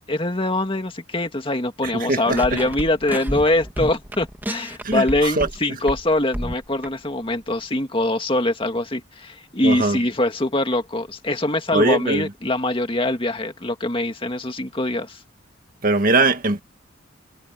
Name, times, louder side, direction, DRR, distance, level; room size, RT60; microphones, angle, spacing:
voice 1, 0.1-15.2, left 1 dB, 25° left, 2.1 m, -23 dB
voice 2, 1.8-2.4 4.8-5.5 9.6-10.0 11.7-12.3 15.8-16.6, right 2 dB, 45° right, 1.9 m, -21 dB
sound 1, 2.3-5.6 5.9-6.9, equal, 10° right, 2.3 m, -30 dB
head